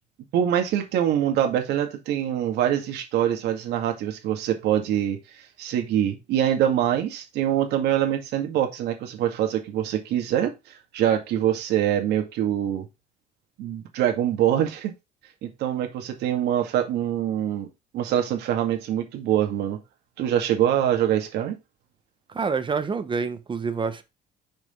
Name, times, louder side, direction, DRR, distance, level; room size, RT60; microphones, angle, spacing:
voice 1, 0.3-10.5 10.9-12.9 13.6-14.9 15.4-17.7 17.9-19.8 20.2-21.6, right 10 dB, 80° right, 2.0 m, -24 dB
voice 2, 22.3-24.0, right 5 dB, 30° right, 1.0 m, -27 dB
6.4 x 5.1 x 3.6 m
cardioid pair, 110°, 17 cm